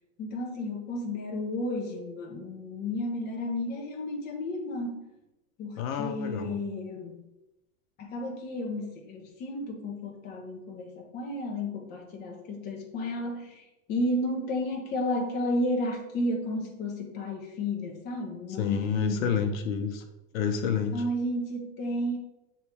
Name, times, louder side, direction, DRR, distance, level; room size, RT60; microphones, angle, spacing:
voice 1, 0.2-5.1 5.6-7.2 8.0-19.4 20.9-22.2, left 1 dB, 25° left, 1 dB, 0.9 m, -32 dB
voice 2, 5.8-6.6 18.6-20.0 20.3-21.0, left 7 dB, 70° left, 7 dB, 0.8 m, -29 dB
8.8 x 3.2 x 3.3 m, 0.98 s
supercardioid pair, 155°, 42 cm